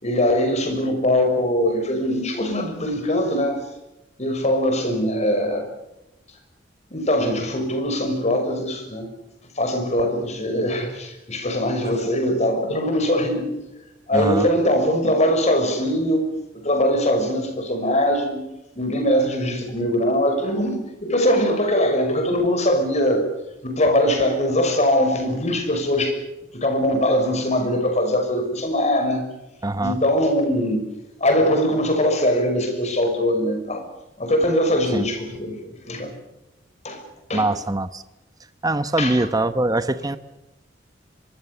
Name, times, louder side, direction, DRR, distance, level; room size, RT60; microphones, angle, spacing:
voice 1, 0.0-3.6 4.2-5.7 6.9-9.1 9.6-13.5 14.1-16.3 16.6-18.4 18.7-23.3 23.6-26.2 26.5-29.2 29.8-30.8 31.2-33.8 34.2-36.1 36.8-37.0 37.3-37.5 39.0-39.3, left 1 dB, 40° left, 6 dB, 6.0 m, -21 dB
voice 2, 14.1-14.5 29.6-30.0 34.9-35.1 37.3-38.0 38.6-40.2, right 2 dB, 20° right, 12 dB, 1.0 m, -22 dB
24.5 x 23.5 x 6.9 m, 0.94 s
head